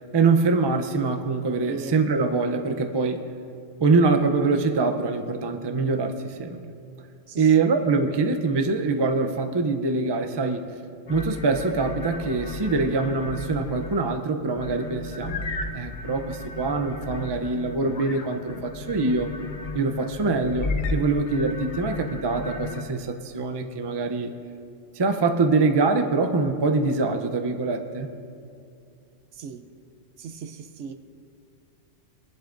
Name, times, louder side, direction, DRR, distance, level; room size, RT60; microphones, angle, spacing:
voice 1, 0.1-3.2 3.8-6.6 7.4-10.7 11.1-15.5 15.7-19.3 19.7-24.3 24.9-28.1, right 3 dB, 30° right, 6 dB, 0.5 m, -24 dB
voice 2, 7.3-7.7 29.3-29.6 30.2-30.9, right 6 dB, 70° right, 8 dB, 0.9 m, -38 dB
sound 1, 11.1-14.2 14.5-22.9, left 3 dB, 45° left, 0.7 m, -34 dB
21.0 x 11.5 x 2.6 m, 2.6 s
omnidirectional pair, 1.3 m